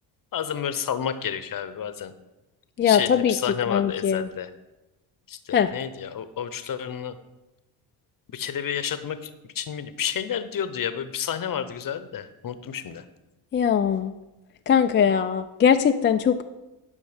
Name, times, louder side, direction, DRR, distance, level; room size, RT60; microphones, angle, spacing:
voice 1, 0.3-2.1 2.9-4.5 5.5-7.1 8.3-9.2 9.6-13.0, left 8 dB, 40° left, 12 dB, 0.8 m, -30 dB
voice 2, 2.8-4.3 5.5-5.7 13.5-14.1 14.7-16.4, left 8 dB, 25° left, 7 dB, 0.3 m, -21 dB
11.0 x 5.3 x 5.0 m, 1.0 s
supercardioid pair, 75°, 50 cm